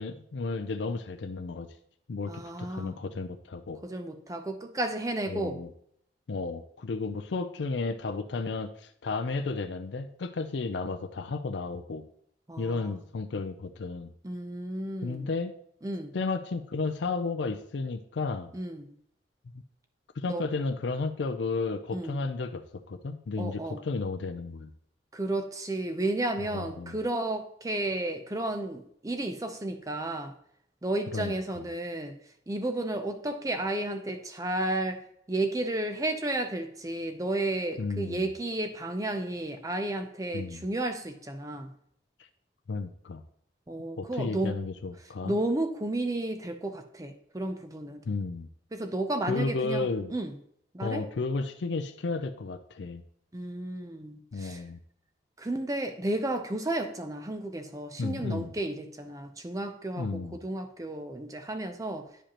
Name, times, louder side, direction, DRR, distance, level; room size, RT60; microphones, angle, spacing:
voice 1, 0.0-1.7 2.1-2.3 2.6-3.8 5.3-5.7 6.3-12.0 12.6-14.1 15.0-15.5 16.1-18.5 20.2-24.7 26.4-27.0 31.1-31.3 37.8-38.3 40.3-40.6 42.7-43.2 44.0-45.4 48.0-48.5 49.3-50.1 50.8-53.0 54.3-54.8 58.0-58.5 60.0-60.4, left 3 dB, 85° left, 8 dB, 0.5 m, -33 dB
voice 2, 2.3-3.0 3.8-5.6 12.5-12.9 14.2-15.3 15.8-16.1 18.5-18.9 20.3-20.5 21.9-22.2 23.4-23.8 25.1-30.3 30.8-32.2 32.5-35.0 35.3-41.7 43.7-44.6 45.2-48.0 48.7-50.3 50.7-51.0 53.3-54.6 55.4-62.1, right 1 dB, 20° right, 6 dB, 0.5 m, -32 dB
10.0 x 5.0 x 2.9 m, 0.67 s
head